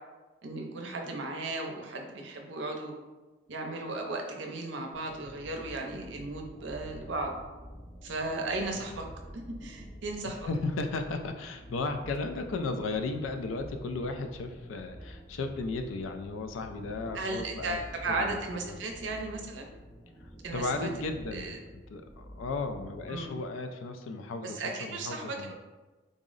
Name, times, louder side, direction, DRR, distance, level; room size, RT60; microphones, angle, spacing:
voice 1, 0.4-2.9 3.5-7.4 8.0-9.1 9.3-10.5 17.1-19.7 20.4-20.9 21.3-21.6 23.1-23.3 24.4-25.5, right 2 dB, 65° right, 2 dB, 0.5 m, -35 dB
sound 1, 4.9-23.4, equal, 15° left, 0.4 m, -48 dB
voice 2, 10.2-17.8 18.1-18.4 18.6-18.8 20.2-21.5 21.9-25.5, left 3 dB, 85° left, 7 dB, 0.4 m, -35 dB
3.7 x 2.0 x 3.7 m, 1.2 s
head